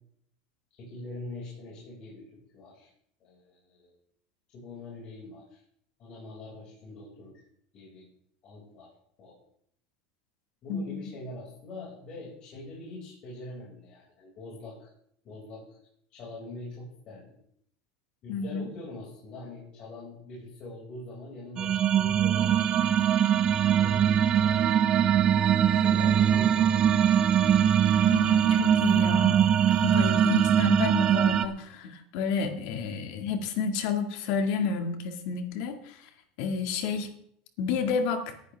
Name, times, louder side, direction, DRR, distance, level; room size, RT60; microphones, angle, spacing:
voice 1, 0.7-2.2 2.5-2.9 3.2-4.0 4.5-5.6 6.0-7.4 7.7-8.0 8.4-8.9 9.2-9.3 10.6-14.9 15.2-15.8 16.1-17.3 18.2-22.7 23.8-25.2 25.7-27.0, left 2 dB, 40° left, -6 dB, 5.7 m, -43 dB
voice 2, 10.7-11.1 18.3-18.7 28.0-29.5 29.8-36.1 36.4-37.1 37.6-38.3, left 5 dB, 60° left, 6 dB, 2.0 m, -30 dB
sound 1, 21.6-31.5, right 9 dB, 30° right, 0.8 m, -22 dB
18.5 x 11.0 x 3.5 m, 0.67 s
supercardioid pair, 150°, 2 cm